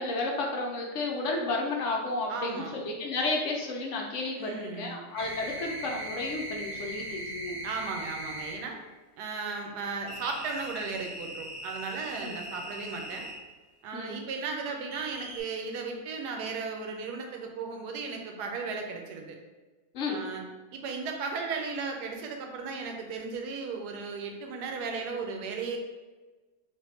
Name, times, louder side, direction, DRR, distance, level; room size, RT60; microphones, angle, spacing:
voice 1, 0.0-7.6 12.2-12.4 13.9-14.2 19.9-20.2, left 3 dB, 60° left, 0 dB, 0.9 m, -32 dB
voice 2, 2.3-2.7 4.4-5.0 7.6-8.8 9.2-13.3 13.8-19.4 20.1-20.4 20.7-25.8, right 4 dB, 90° right, 3 dB, 1.2 m, -36 dB
sound 1, 5.1-8.6 10.1-13.4 14.9-15.4, right 1 dB, 25° right, 0.8 m, -39 dB
3.5 x 2.6 x 4.1 m, 1.2 s
omnidirectional pair, 1.7 m